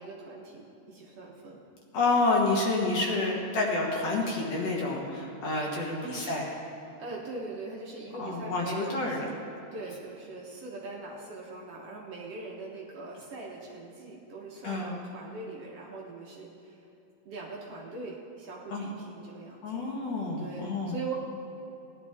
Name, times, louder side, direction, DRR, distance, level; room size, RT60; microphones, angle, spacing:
voice 1, 0.0-1.6 6.0-6.2 7.0-9.2 9.7-16.8 17.3-19.6 20.4-21.1, right 3 dB, 60° right, -3 dB, 2.1 m, -41 dB
voice 2, 1.9-6.5 8.2-9.3 14.6-14.9 18.7-18.9 19.6-20.9, left 3 dB, 60° left, -2 dB, 2.4 m, -29 dB
18.5 x 11.0 x 3.6 m, 2.9 s
omnidirectional pair, 3.5 m